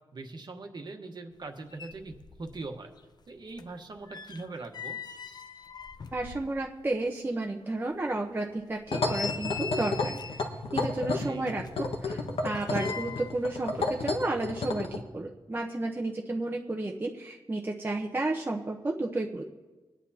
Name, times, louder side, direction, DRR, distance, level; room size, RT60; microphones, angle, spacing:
voice 1, 0.1-2.1 2.4-2.9 3.3-5.0 11.1-11.5, right 3 dB, 45° right, 4 dB, 1.2 m, -41 dB
sound 1, 1.4-1.5 1.7-2.7 3.0-6.9 7.3-7.4 7.9-8.0 8.6-10.5 11.4-13.4 13.7-13.8, left 6 dB, 45° left, 0.6 m, -42 dB
voice 2, 6.1-10.1 10.7-11.6 12.0-19.4, right 2 dB, 20° right, 0 dB, 0.8 m, -32 dB
sound 2, 8.9-15.0, left 3 dB, 70° left, 1.4 m, -31 dB
23.5 x 9.8 x 2.8 m, 1.2 s
wide cardioid pair, 135°, 10 cm